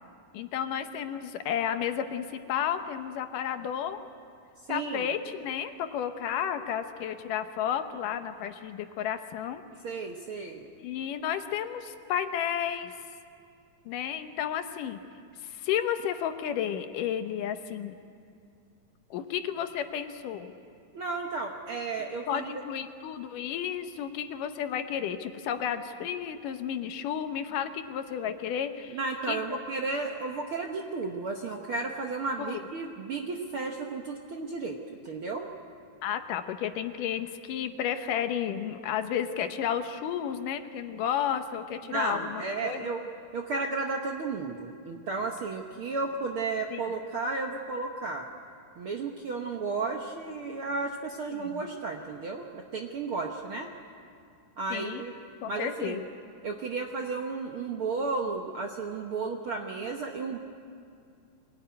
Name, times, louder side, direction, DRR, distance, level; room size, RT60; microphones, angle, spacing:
voice 1, 0.3-4.0 4.7-9.6 10.8-12.9 13.9-15.0 15.4-17.9 19.1-20.5 22.3-29.0 29.3-29.4 32.4-32.6 36.0-42.8 46.7-46.8 51.3-51.6 54.7-55.0 55.4-56.0, left 9 dB, 75° left, 8 dB, 2.5 m, -32 dB
voice 2, 4.7-5.1 9.8-10.7 20.9-22.5 28.9-34.8 35.0-35.5 41.9-43.1 43.3-48.3 48.8-53.7 54.6-55.1 55.5-56.0 56.4-60.4, right 3 dB, 60° right, 2 dB, 1.4 m, -33 dB
24.5 x 17.5 x 9.6 m, 2.4 s
omnidirectional pair, 3.9 m